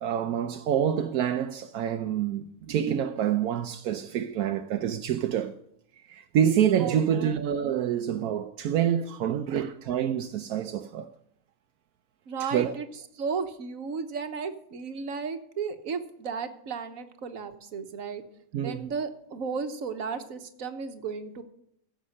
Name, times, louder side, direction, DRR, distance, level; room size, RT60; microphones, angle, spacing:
voice 1, 0.0-5.6 6.1-11.1 12.5-12.7 18.5-18.9, right 9 dB, 85° right, 1.2 m, -27 dB
voice 2, 6.8-7.4 9.5-9.7 12.3-12.9 13.2-18.2 18.6-21.4, right 5 dB, 70° right, 1.5 m, -34 dB
15.5 x 6.3 x 6.3 m
omnidirectional pair, 1.5 m